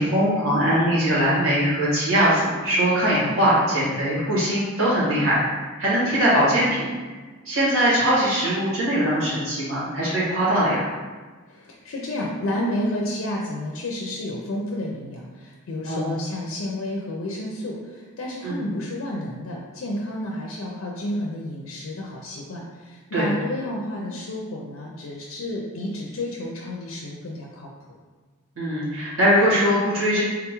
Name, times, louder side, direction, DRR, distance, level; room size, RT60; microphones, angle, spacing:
voice 1, 0.0-7.1 7.4-10.9 15.8-16.0 18.4-18.6 23.1-23.3 28.5-30.2, equal, 85° right, -8 dB, 1.5 m, -21 dB
voice 2, 11.5-27.7, left 1 dB, 85° left, -2 dB, 0.4 m, -31 dB
3.7 x 2.3 x 2.9 m, 1.4 s
head